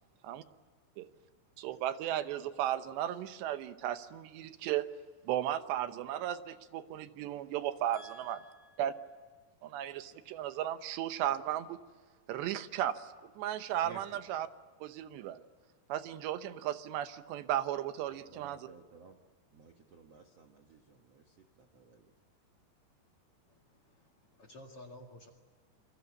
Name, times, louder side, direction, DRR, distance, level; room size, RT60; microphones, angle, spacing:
voice 1, 1.6-4.9 5.3-8.4 8.8-8.9 9.6-11.8 12.3-13.1 13.4-14.5 14.8-15.4 15.9-18.7, right 11 dB, 80° right, 3.2 m, -35 dB
voice 2, 7.9-8.8 13.8-14.0 18.0-19.2 19.5-22.1, right 3 dB, 55° right, 1.8 m, -56 dB
voice 3, 23.5-25.3, left 1 dB, 40° left, 2.3 m, -53 dB
28.0 x 23.5 x 8.3 m
omnidirectional pair, 5.0 m